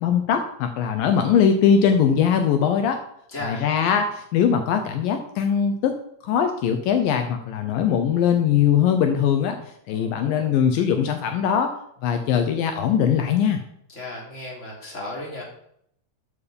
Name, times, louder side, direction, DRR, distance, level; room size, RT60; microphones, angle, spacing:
voice 1, 0.0-3.0 3.4-6.0 6.2-9.6 9.9-11.7 12.0-13.6, left 8 dB, 75° left, 6 dB, 2.5 m, -21 dB
voice 2, 3.3-3.7 9.9-10.6 13.9-15.4, left 1 dB, 20° left, -3 dB, 3.6 m, -35 dB
13.5 x 7.2 x 5.3 m, 0.72 s
omnidirectional pair, 4.2 m